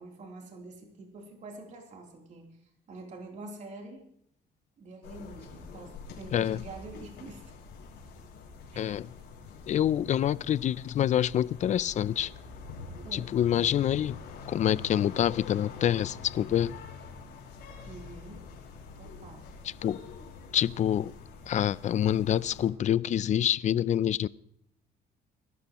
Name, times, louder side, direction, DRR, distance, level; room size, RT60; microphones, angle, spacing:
voice 1, 0.0-2.5 2.9-4.1 4.8-7.4 8.7-9.0 12.9-13.3 14.4-14.5 17.8-18.4 18.9-19.5 20.4-20.6, right 2 dB, 45° right, 3.4 m, -46 dB
sound 1, 5.0-22.7, left 5 dB, 85° left, 5.6 m, -45 dB
voice 2, 8.8-9.1 9.7-12.3 13.1-14.2 14.5-16.7 19.8-20.0 20.5-21.1 21.5-24.3, left 10 dB, 45° left, 0.5 m, -26 dB
23.5 x 12.5 x 3.1 m
cardioid pair, 110°, 17 cm